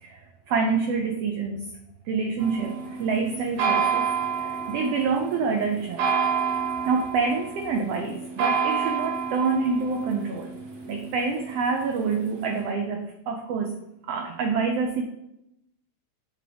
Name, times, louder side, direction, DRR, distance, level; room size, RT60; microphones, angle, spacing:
voice 1, 0.5-1.6 2.1-4.1 4.4-6.1 6.9-10.6 10.9-13.8 14.1-15.0, right 5 dB, 85° right, 4 dB, 1.4 m, -27 dB
sound 1, 2.4-12.6, right 6 dB, 60° right, 2.0 m, -29 dB
7.7 x 3.4 x 5.0 m, 0.85 s
omnidirectional pair, 3.5 m